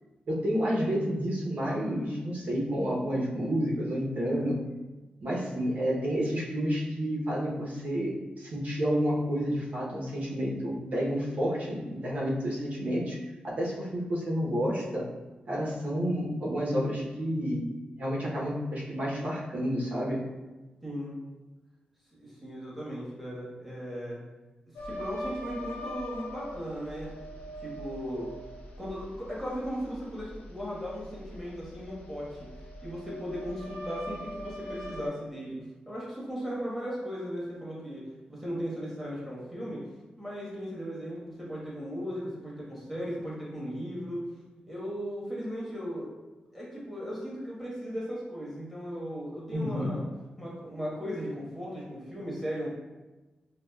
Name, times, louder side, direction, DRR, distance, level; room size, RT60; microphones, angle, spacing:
voice 1, 0.3-4.6 5.2-13.2 13.4-15.1 15.5-17.6 18.0-20.2 49.5-50.0, equal, 60° right, -4 dB, 0.9 m, -30 dB
voice 2, 20.8-21.1 22.1-24.2 24.8-27.1 27.6-28.3 28.8-32.5 32.8-35.6 35.9-38.0 38.3-39.8 40.2-44.2 44.7-46.1 46.5-50.0 50.4-52.7, equal, 5° right, -6 dB, 1.3 m, -37 dB
sound 1, 24.8-35.1, equal, 90° left, 0.5 m, -42 dB
4.8 x 2.1 x 2.3 m, 1.1 s
cardioid pair, 80°, 3 cm